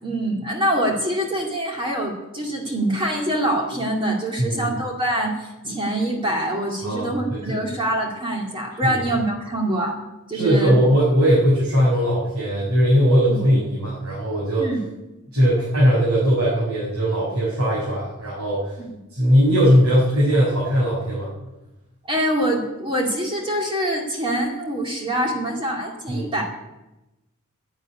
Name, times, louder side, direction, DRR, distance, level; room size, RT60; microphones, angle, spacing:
voice 1, 0.0-9.9 10.3-10.8 13.3-13.4 14.6-14.8 18.8-18.9 22.1-26.4, right 1 dB, 25° right, 0 dB, 2.5 m, -24 dB
voice 2, 4.4-4.8 6.8-7.6 8.8-9.0 10.3-14.7 15.3-18.6 19.1-21.3 26.1-26.3, equal, 90° right, -6 dB, 6.5 m, -19 dB
11.0 x 10.5 x 9.8 m, 1.0 s
head